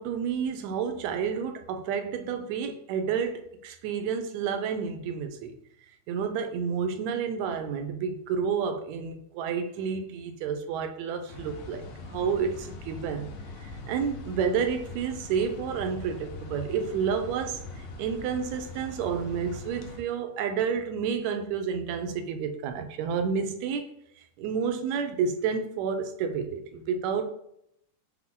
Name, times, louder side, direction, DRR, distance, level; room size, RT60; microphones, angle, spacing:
voice 1, 0.0-5.6 6.1-13.3 13.6-17.6 18.0-23.9 24.4-27.2, right 6 dB, 80° right, 1.8 m, -30 dB
sound 1, 11.3-20.0, left 2 dB, 85° left, 2.1 m, -42 dB
5.8 x 2.1 x 3.6 m
omnidirectional pair, 3.4 m